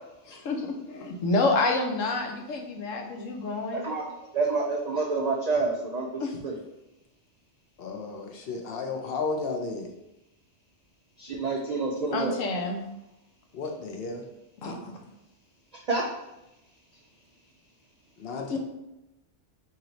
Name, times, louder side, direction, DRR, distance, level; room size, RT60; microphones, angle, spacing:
voice 1, 0.3-3.9 6.2-6.4 12.1-12.8 14.6-14.9 18.5-18.6, left 3 dB, 85° left, 2 dB, 1.1 m, -28 dB
voice 2, 3.7-4.0 4.3-6.1 6.4-6.5 11.3-12.3 15.9-16.1, right 3 dB, 75° right, 0 dB, 0.3 m, -27 dB
voice 3, 7.8-9.9 13.5-14.2 18.2-18.6, left 4 dB, 55° left, 3 dB, 0.8 m, -33 dB
4.4 x 2.9 x 3.9 m, 0.92 s
omnidirectional pair, 1.3 m